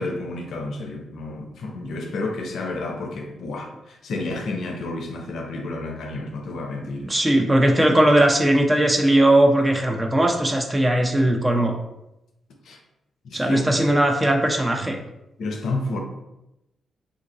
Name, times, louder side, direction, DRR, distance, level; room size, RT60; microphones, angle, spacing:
voice 1, 0.0-7.1 12.6-12.8 13.2-13.8 15.4-16.0, left 2 dB, 70° left, 3 dB, 0.5 m, -30 dB
voice 2, 7.0-11.8 13.3-15.0, right 1 dB, 20° right, 3 dB, 0.6 m, -19 dB
2.7 x 2.5 x 3.9 m, 0.89 s
hypercardioid pair, 45°, 0 cm